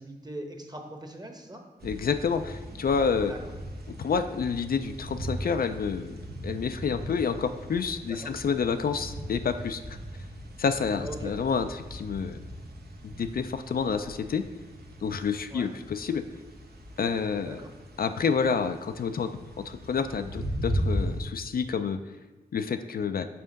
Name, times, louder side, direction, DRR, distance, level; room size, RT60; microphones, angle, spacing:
voice 1, 0.0-1.6 3.2-3.5 8.1-8.3 11.0-11.3 15.5-15.7 17.4-17.7, right 1 dB, 25° right, 4 dB, 1.0 m, -41 dB
voice 2, 1.8-3.3 4.0-9.8 10.6-12.4 13.0-14.4 15.0-16.2 17.0-17.6 18.0-19.3 19.6-22.0 22.5-23.3, left 6 dB, 65° left, 9 dB, 0.4 m, -29 dB
sound 1, 1.8-21.2, equal, 70° right, 0.8 m, -38 dB
5.6 x 3.6 x 5.2 m, 1.2 s
cardioid pair, 55°, 17 cm